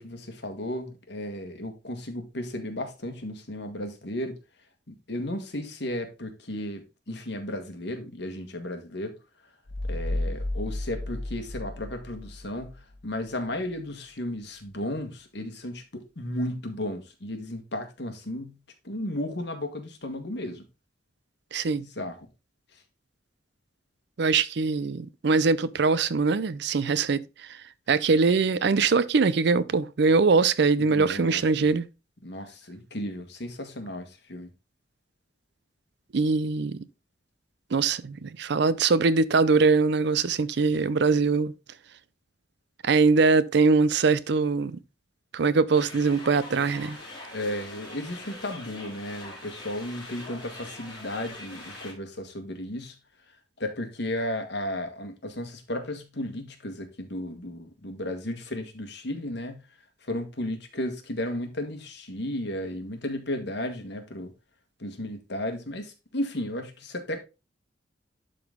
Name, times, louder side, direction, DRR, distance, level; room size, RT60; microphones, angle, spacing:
voice 1, 0.0-4.4 4.9-9.1 9.9-12.7 13.0-18.6 18.8-20.6 21.8-22.3 30.8-31.7 32.2-34.5 47.3-53.0 53.6-59.6 60.0-64.3 64.8-67.2, left 1 dB, 65° left, 1.6 m, -34 dB
sound 1, 9.7-13.0, left 1 dB, 90° left, 1.2 m, -33 dB
voice 2, 21.5-21.8 24.2-27.2 27.9-31.9 36.1-36.8 37.7-41.5 42.8-44.8 45.3-47.0, right 4 dB, 65° right, 0.5 m, -22 dB
sound 2, 45.7-51.9, left 2 dB, 25° left, 3.9 m, -43 dB
11.5 x 4.0 x 3.6 m
head